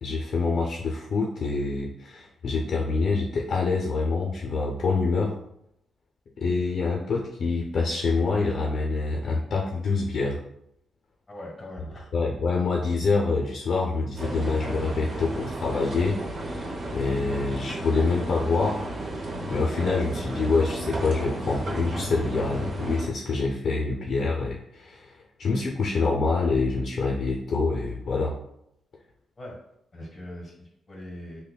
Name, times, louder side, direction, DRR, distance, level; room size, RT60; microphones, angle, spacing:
voice 1, 0.0-5.4 6.4-10.4 12.1-18.8 19.5-28.3, left 4 dB, 50° left, -2 dB, 0.5 m, -26 dB
voice 2, 11.3-12.1 29.4-29.5 29.9-31.4, left 1 dB, 20° left, -2 dB, 1.2 m, -41 dB
sound 1, 14.2-23.1, right 1 dB, 50° right, 0.7 m, -33 dB
5.5 x 2.1 x 2.2 m, 0.77 s
cardioid pair, 150°, 0 cm